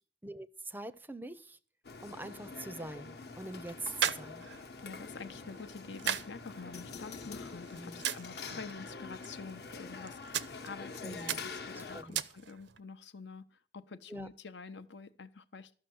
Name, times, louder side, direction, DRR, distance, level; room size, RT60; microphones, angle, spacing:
voice 1, 0.2-1.6 2.0-4.4 7.8-8.0 11.0-11.4 11.7-12.2 14.1-14.3, right 2 dB, 10° right, 16 dB, 0.5 m, -44 dB
sound 1, 1.8-12.0, left 4 dB, 60° left, 1.0 m, -46 dB
sound 2, 2.8-12.8, right 9 dB, 90° right, 0.7 m, -41 dB
voice 2, 4.8-13.4 13.7-15.7, left 4 dB, 85° left, 11 dB, 0.8 m, -47 dB
13.5 x 6.4 x 7.8 m, 0.42 s
head